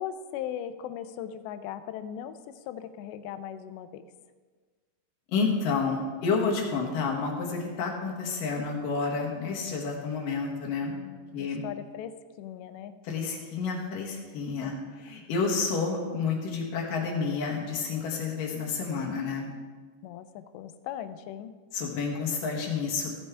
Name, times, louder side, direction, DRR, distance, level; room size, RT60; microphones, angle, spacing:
voice 1, 0.0-2.4 2.7-4.0 10.9-12.9 14.6-14.7 20.0-21.5, left 10 dB, 85° left, 11 dB, 2.8 m, -38 dB
voice 2, 5.3-10.9 11.3-11.6 13.0-19.5 21.7-23.2, left 4 dB, 65° left, 0 dB, 2.6 m, -30 dB
15.5 x 9.5 x 3.4 m, 1.5 s
omnidirectional pair, 5.0 m